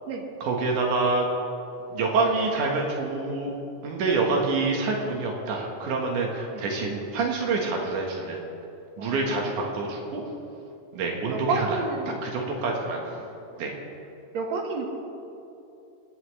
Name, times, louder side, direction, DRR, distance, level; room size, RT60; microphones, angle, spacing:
voice 1, 0.4-1.3 1.9-3.6 3.8-8.4 9.0-10.2 10.9-11.8 12.2-13.2 13.6-13.7, right 3 dB, 90° right, 0 dB, 3.0 m, -27 dB
voice 2, 9.0-9.8 11.3-12.2 13.2-13.3 14.3-14.9, right 3 dB, 70° right, 2 dB, 2.5 m, -31 dB
28.0 x 9.7 x 3.2 m, 2.8 s
omnidirectional pair, 3.4 m